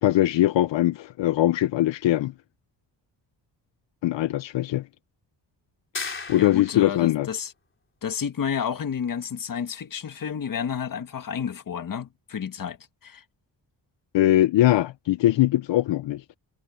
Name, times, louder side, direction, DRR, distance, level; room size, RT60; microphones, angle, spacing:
voice 1, 0.0-2.3 4.0-4.9 6.3-7.3 14.1-16.2, left 14 dB, 80° left, 0.6 m, -21 dB
sound 1, 5.9-7.0, left 4 dB, 25° left, 3.8 m, -35 dB
voice 2, 6.4-7.5 8.0-12.8 13.0-13.2, left 7 dB, 50° left, 1.7 m, -30 dB
wide cardioid pair, 170°, 43 cm